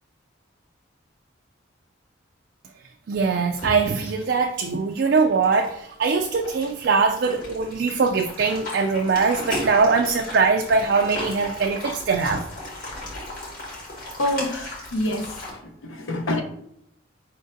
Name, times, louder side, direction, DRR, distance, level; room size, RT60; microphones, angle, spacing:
voice 1, 3.1-12.4, right 4 dB, 55° right, 3 dB, 0.3 m, -22 dB
sound 1, 3.5-15.5, left 1 dB, 45° left, 1.7 m, -36 dB
voice 2, 14.2-16.4, left 1 dB, 75° left, 3 dB, 0.8 m, -27 dB
5.1 x 3.8 x 2.6 m, 0.74 s
head